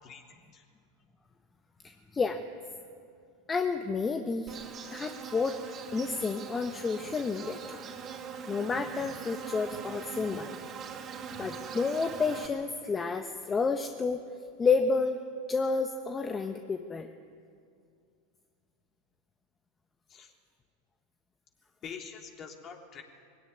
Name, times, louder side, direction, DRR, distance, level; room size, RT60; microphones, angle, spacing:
voice 1, 0.0-0.6 20.1-20.3 21.8-23.0, left 6 dB, 40° left, 2 dB, 3.4 m, -45 dB
voice 2, 1.8-2.4 3.5-4.6 4.9-5.6 5.9-7.8 8.5-10.6 11.4-14.2 14.6-15.2 15.5-17.1, left 4 dB, 20° left, 6 dB, 1.2 m, -30 dB
Insect, 4.5-12.5, right 6 dB, 35° right, 3.0 m, -41 dB
21.5 x 16.5 x 9.5 m, 2.3 s
hypercardioid pair, 95°, 0 cm